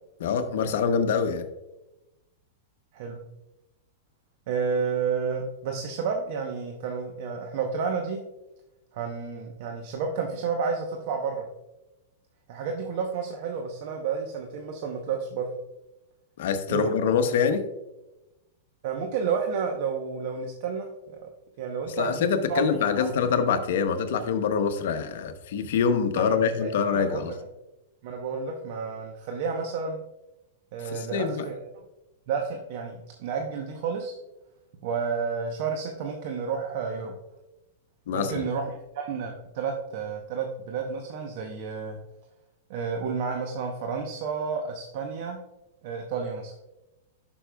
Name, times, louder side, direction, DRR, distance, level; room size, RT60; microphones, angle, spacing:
voice 1, 0.2-1.4 16.4-17.7 21.9-27.3 30.8-31.5 38.1-38.5, left 6 dB, 70° left, 8 dB, 0.8 m, -25 dB
voice 2, 4.5-8.2 8.9-11.5 12.5-15.5 16.7-16.9 18.8-21.3 21.6-22.7 23.0-23.1 26.1-27.3 28.0-30.0 30.7-31.8 32.3-34.2 34.8-37.1 38.1-42.0 42.7-45.4 45.8-46.5, right 5 dB, 55° right, 3 dB, 0.8 m, -31 dB
11.0 x 5.4 x 2.3 m, 0.99 s
supercardioid pair, 150°, 0 cm